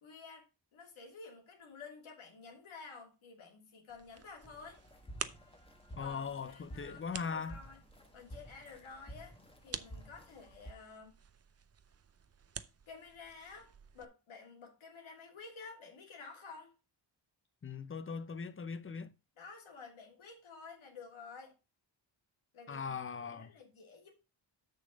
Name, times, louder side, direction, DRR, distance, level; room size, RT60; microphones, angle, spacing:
voice 1, 0.0-4.8 6.0-7.8 8.1-9.4 9.6-11.2 12.9-13.7 13.9-16.7 19.4-21.6 22.5-24.1, left 4 dB, 90° left, 2.7 m, -52 dB
sound 1, 3.9-14.1, right 7 dB, 35° right, 0.6 m, -50 dB
sound 2, 4.4-10.7, right 1 dB, 10° left, 1.3 m, -52 dB
voice 2, 6.0-7.6 17.6-19.1 22.7-23.5, left 5 dB, 25° left, 0.7 m, -40 dB
6.7 x 6.4 x 5.0 m
wide cardioid pair, 105°, 46 cm